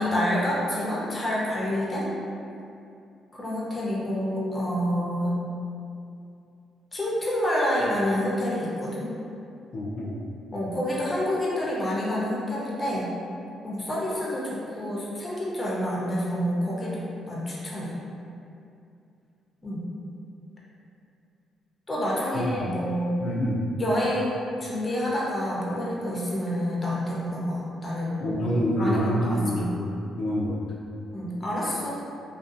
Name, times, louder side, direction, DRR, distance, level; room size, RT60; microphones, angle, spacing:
voice 1, 0.0-2.1 3.3-5.4 6.9-9.1 10.5-13.1 13.6-17.0 17.3-17.9 19.6-19.8 21.9-23.1 23.8-28.2 28.8-29.7 31.1-31.9, equal, 25° left, -6 dB, 0.6 m, -28 dB
voice 2, 9.7-10.2 22.3-22.5 23.2-23.6 28.2-29.9 30.2-30.6, equal, 75° left, -6 dB, 0.4 m, -26 dB
2.6 x 2.3 x 2.5 m, 2.6 s
cardioid pair, 90°, 0 cm